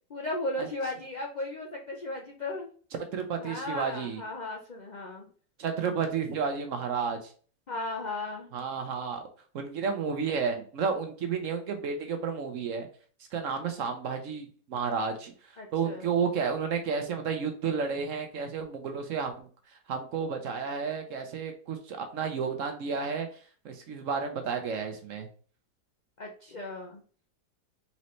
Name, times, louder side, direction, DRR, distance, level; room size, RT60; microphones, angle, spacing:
voice 1, 0.1-2.7 3.4-5.3 7.7-8.5 15.6-16.1 26.2-27.0, left 2 dB, 65° left, 0 dB, 0.4 m, -36 dB
voice 2, 3.1-4.2 5.6-7.3 8.5-9.2 9.5-12.9 13.3-25.3, right 6 dB, 65° right, 5 dB, 0.9 m, -32 dB
4.1 x 4.1 x 3.1 m, 0.42 s
omnidirectional pair, 1.7 m